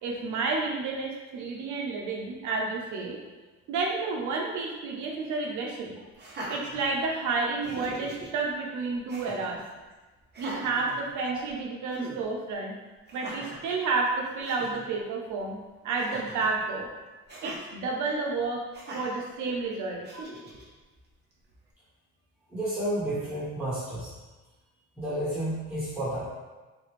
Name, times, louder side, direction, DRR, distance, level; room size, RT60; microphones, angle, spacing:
voice 1, 0.0-3.2 3.7-6.0 6.5-9.6 10.4-12.7 13.1-15.6 15.8-16.9 17.4-18.6 18.9-20.0, right 3 dB, 80° right, -1 dB, 0.6 m, -30 dB
Laughter, 6.1-7.3 7.6-8.3 9.1-9.6 10.3-11.5 11.9-12.2 13.1-13.7 14.2-14.3 14.4-14.8 16.0-16.6 17.3-17.6 18.7-19.2 20.0-20.6, right 1 dB, 35° right, 0.8 m, -40 dB
voice 2, 22.5-24.1 25.0-26.3, right 1 dB, 5° right, -11 dB, 1.3 m, -31 dB
3.4 x 2.4 x 3.1 m, 1.2 s
cardioid pair, 90°, 30 cm